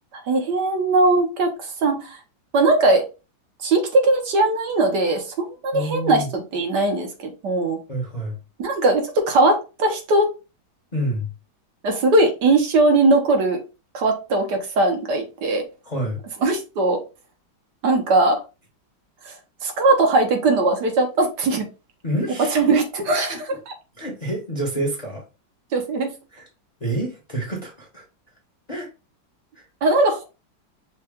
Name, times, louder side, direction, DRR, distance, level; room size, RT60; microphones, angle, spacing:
voice 1, 0.1-2.2 2.5-3.0 3.6-7.8 8.6-10.3 11.8-13.6 13.9-15.6 16.4-17.0 17.8-18.4 19.2-19.3 19.6-21.7 22.5-23.7 25.7-26.1 29.8-30.2, right 2 dB, 65° right, 4 dB, 1.5 m, -20 dB
voice 2, 5.7-6.3 7.9-8.4 10.9-11.3 15.8-16.2 22.0-22.8 23.3-23.4 24.0-25.2 26.3-26.5 26.8-28.0 28.7-28.9 29.5-29.7, right 1 dB, 25° left, -1 dB, 0.9 m, -28 dB
5.7 x 2.3 x 3.5 m, 0.30 s
omnidirectional pair, 2.1 m